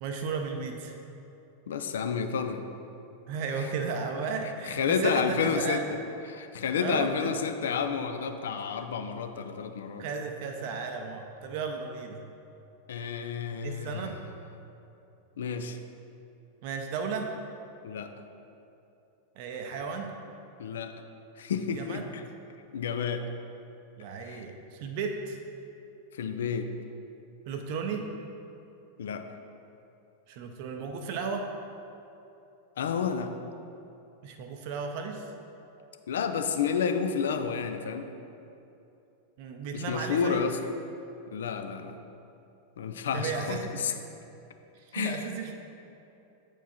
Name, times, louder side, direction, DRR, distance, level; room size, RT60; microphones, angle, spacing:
voice 1, 0.0-0.9 3.3-5.8 6.8-7.3 10.0-12.2 13.6-14.2 16.6-17.3 19.4-20.1 21.7-22.1 24.0-25.4 27.5-28.1 30.3-31.5 34.2-35.3 39.4-40.5 43.1-44.0 44.7-45.5, right 5 dB, 45° right, 4 dB, 0.5 m, -34 dB
voice 2, 1.7-2.6 4.7-5.8 6.3-10.0 12.9-14.1 15.4-15.8 17.8-18.1 20.6-20.9 21.4-22.2 22.7-23.2 24.2-24.4 26.2-26.7 29.0-29.2 32.8-33.3 36.1-38.1 39.7-40.6 41.3-42.0 42.8-43.9 44.9-45.3, left 6 dB, 60° left, 7 dB, 0.4 m, -30 dB
8.0 x 4.6 x 4.2 m, 2.8 s
figure-of-eight pair, 90°, 0 cm